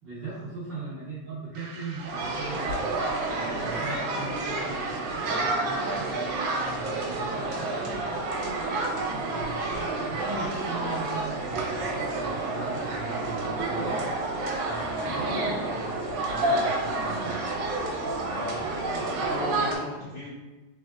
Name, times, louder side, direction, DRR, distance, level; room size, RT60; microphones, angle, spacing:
voice 1, 0.0-2.9 3.3-8.1 9.2-13.9 14.6-17.4, right 3 dB, 55° right, -12 dB, 1.3 m, -39 dB
sound 1, 1.6-7.3, right 4 dB, 90° right, 2.3 m, -46 dB
sound 2, 2.0-19.8, right 2 dB, 75° right, 2.1 m, -29 dB
voice 2, 18.3-20.3, left 1 dB, 75° left, -7 dB, 1.2 m, -37 dB
4.7 x 4.0 x 2.4 m, 1.1 s
omnidirectional pair, 3.8 m